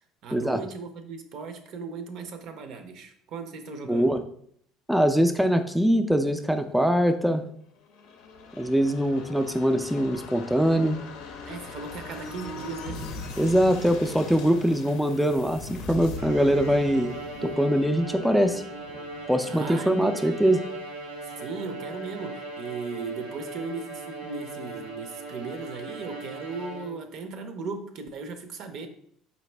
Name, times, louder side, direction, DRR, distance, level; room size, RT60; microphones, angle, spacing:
voice 1, 0.2-4.2 11.5-13.0 19.5-20.1 21.2-28.9, right 4 dB, 60° right, 7 dB, 0.5 m, -37 dB
voice 2, 3.9-4.2 4.9-7.5 8.6-11.0 13.4-17.2 17.4-18.6 19.3-20.6, equal, ahead, 7 dB, 0.3 m, -23 dB
sound 1, 7.9-21.3 21.7-21.8, left 2 dB, 80° left, 0.5 m, -41 dB
Bowed string instrument, 16.2-27.2, right 2 dB, 85° right, 1.0 m, -39 dB
4.1 x 2.5 x 3.2 m, 0.66 s
supercardioid pair, 80°, 0 cm